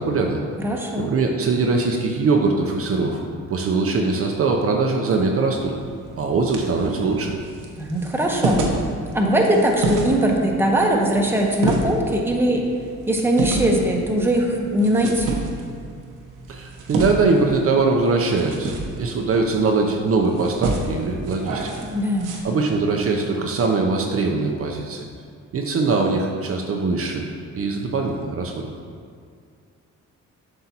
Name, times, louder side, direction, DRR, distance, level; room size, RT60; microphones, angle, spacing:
voice 1, 0.0-0.4 1.0-3.2 3.5-5.7 6.2-7.3 16.5-21.7 22.4-25.0 25.5-27.2 27.5-28.7, right 3 dB, 50° right, 1 dB, 0.7 m, -22 dB
voice 2, 0.6-1.1 7.8-8.6 9.1-12.6 13.1-15.3 21.8-22.4, right 1 dB, 5° right, 0 dB, 1.0 m, -20 dB
sound 1, 5.6-22.4, right 2 dB, 85° right, 1.0 m, -30 dB
7.6 x 5.8 x 2.9 m, 2.2 s
cardioid pair, 90°, 30 cm